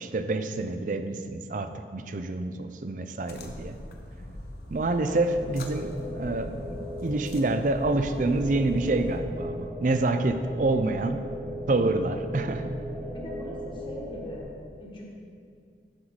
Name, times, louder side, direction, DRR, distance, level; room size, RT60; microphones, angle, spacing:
voice 1, 0.0-3.8 4.7-11.2 11.7-12.7, right 2 dB, 45° right, 9 dB, 0.4 m, -27 dB
sound 1, 3.2-9.2, left 1 dB, 60° left, 0.8 m, -42 dB
sound 2, 5.3-14.4, left 1 dB, 10° right, 0.9 m, -38 dB
voice 2, 13.0-14.5 14.8-15.0, equal, 30° left, -3 dB, 1.2 m, -40 dB
13.0 x 4.8 x 4.0 m, 2.3 s
head